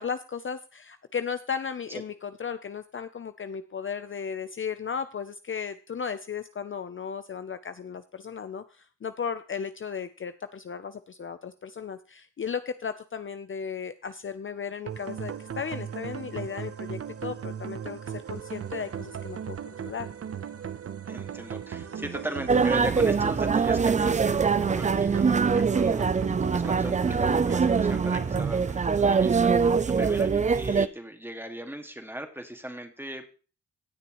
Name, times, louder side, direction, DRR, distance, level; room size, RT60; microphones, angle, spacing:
voice 1, 0.0-19.6 19.8-20.1, left 6 dB, 40° left, 11 dB, 0.6 m, -35 dB
sound 1, 14.9-29.9, right 8 dB, 45° right, 0.8 m, -38 dB
voice 2, 21.1-26.1 26.5-33.3, right 1 dB, 5° right, 5 dB, 2.0 m, -38 dB
sound 2, 22.5-30.9, right 5 dB, 25° right, 0.4 m, -23 dB
17.5 x 6.7 x 3.1 m, 0.37 s
cardioid pair, 65°, 32 cm